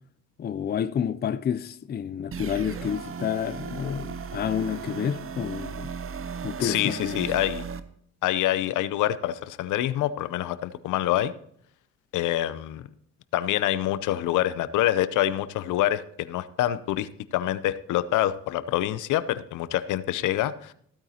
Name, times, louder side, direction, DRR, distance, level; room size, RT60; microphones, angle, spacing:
voice 1, 0.4-5.9 6.4-7.2, left 8 dB, 35° left, 0.5 m, -29 dB
sound 1, 2.3-7.8, right 6 dB, 45° right, 0.8 m, -36 dB
voice 2, 6.6-7.6 8.2-11.3 12.1-12.9 13.3-20.7, left 13 dB, 80° left, 0.6 m, -26 dB
15.5 x 8.9 x 2.8 m
cardioid pair, 90°, 30 cm